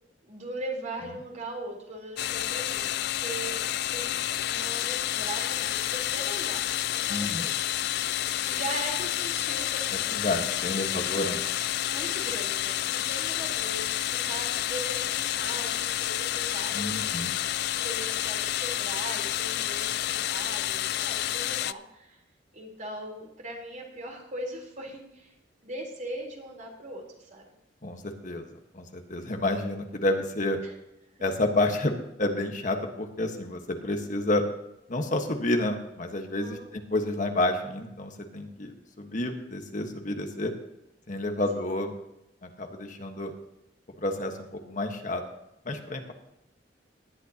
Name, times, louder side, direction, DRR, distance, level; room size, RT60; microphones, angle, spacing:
voice 1, 0.2-3.6 3.9-4.2 4.4-6.6 6.9-7.5 8.5-10.2 10.9-11.1 11.9-17.5 17.8-22.2 22.5-25.3 25.6-27.5 30.6-30.7 36.4-36.7 41.0-41.1 41.5-41.7, right 1 dB, 45° right, 0 dB, 3.9 m, -40 dB
sound 1, 2.2-21.7, left 13 dB, 65° left, 0.4 m, -29 dB
voice 2, 7.1-7.5 10.2-11.4 16.7-17.3 27.8-30.6 31.2-34.4 34.9-40.5 41.1-41.9 42.4-43.3 44.0-45.2 45.6-46.1, left 2 dB, 45° left, 4 dB, 1.4 m, -30 dB
19.0 x 11.5 x 2.9 m, 0.85 s
head